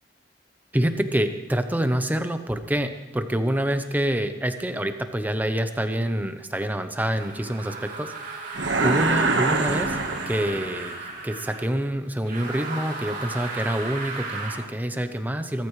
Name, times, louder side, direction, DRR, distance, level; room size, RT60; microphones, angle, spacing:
voice 1, 0.7-8.1 8.8-10.0 10.3-15.7, right 1 dB, 10° right, 8 dB, 0.9 m, -26 dB
sound 1, 7.0-11.7 12.2-14.7, right 3 dB, 50° right, 3.4 m, -35 dB
sound 2, 8.5-10.9, right 3 dB, 70° right, 1.5 m, -24 dB
23.0 x 14.0 x 3.3 m, 1.1 s
head